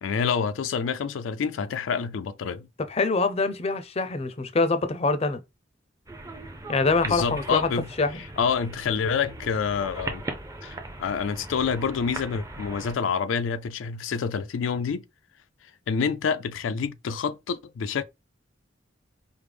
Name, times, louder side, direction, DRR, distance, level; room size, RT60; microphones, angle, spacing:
voice 1, 0.0-2.7 7.1-7.9 8.1-10.2 10.6-15.0 15.9-18.0, left 6 dB, 90° left, 0.4 m, -27 dB
voice 2, 2.9-5.4 6.7-7.7 8.0-8.2, left 3 dB, 30° left, 0.5 m, -24 dB
sound 1, 6.1-12.9, right 2 dB, 15° right, 0.5 m, -39 dB
4.8 x 2.0 x 3.3 m
head